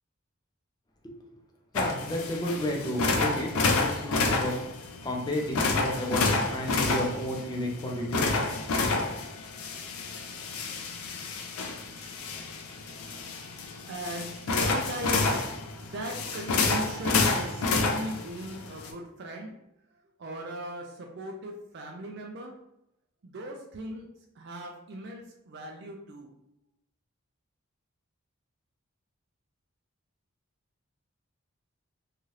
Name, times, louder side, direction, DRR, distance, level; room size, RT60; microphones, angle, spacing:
sound 1, 1.7-18.9, left 3 dB, 80° left, 0.4 m, -29 dB
voice 1, 1.7-4.5 5.0-8.5, left 1 dB, 20° left, 0 dB, 0.5 m, -32 dB
voice 2, 13.9-15.4 15.8-19.5 20.2-22.5 23.2-24.0 24.4-26.3, right 1 dB, 50° right, 1 dB, 0.4 m, -38 dB
2.8 x 2.4 x 3.1 m, 0.83 s
head